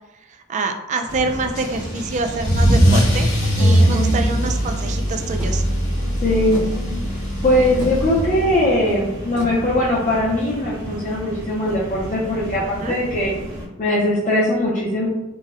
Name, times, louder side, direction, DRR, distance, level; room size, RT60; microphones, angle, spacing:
voice 1, 0.5-3.3 3.6-5.6 12.7-13.0, right 3 dB, 35° right, 5 dB, 0.3 m, -26 dB
sound 1, 1.1-13.7, equal, 60° right, 1.0 m, -33 dB
Car / Engine starting / Accelerating revving vroom, 1.5-8.7, equal, 90° left, 0.8 m, -20 dB
voice 2, 3.6-4.3 6.2-6.6 7.4-13.3 13.8-15.1, left 1 dB, 40° left, -6 dB, 0.5 m, -20 dB
sound 2, 5.4-11.0, equal, 10° right, 0.7 m, -37 dB
4.0 x 2.1 x 2.4 m, 1.0 s
head